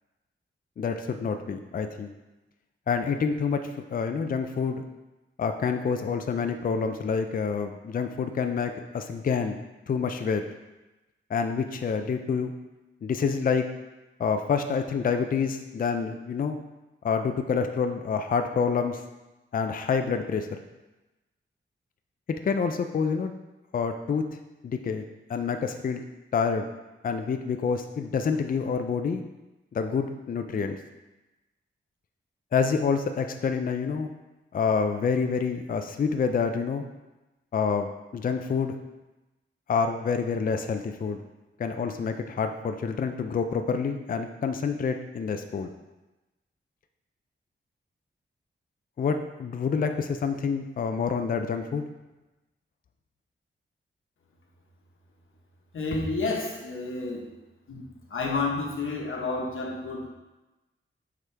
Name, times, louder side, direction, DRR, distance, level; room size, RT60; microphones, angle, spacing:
voice 1, 0.8-2.1 2.9-4.8 5.4-9.6 9.9-10.4 11.3-12.5 13.0-13.7 14.2-16.6 17.0-19.0 19.5-20.5 22.4-23.3 23.7-24.2 24.6-25.0 25.3-26.0 26.3-26.7 27.0-29.2 29.7-30.8 32.5-34.1 34.5-36.8 37.5-38.7 39.7-41.2 41.6-45.7 49.0-51.9, left 5 dB, 45° left, 7 dB, 0.4 m, -27 dB
voice 2, 55.7-57.3 57.7-60.1, left 3 dB, 75° left, 0 dB, 1.2 m, -30 dB
8.2 x 4.9 x 3.3 m, 1.1 s
wide cardioid pair, 155°, 21 cm